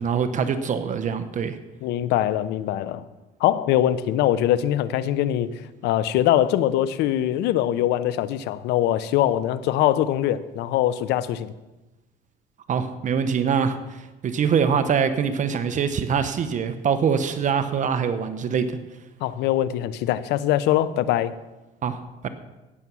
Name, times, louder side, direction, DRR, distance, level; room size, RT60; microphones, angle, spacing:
voice 1, 0.0-1.6 12.7-18.8 21.8-22.3, right 6 dB, 45° right, 10 dB, 1.0 m, -24 dB
voice 2, 1.8-3.0 3.4-11.5 19.2-21.3, left 12 dB, 85° left, 15 dB, 0.7 m, -22 dB
17.0 x 6.9 x 6.2 m, 1.1 s
cardioid pair, 110°, 17 cm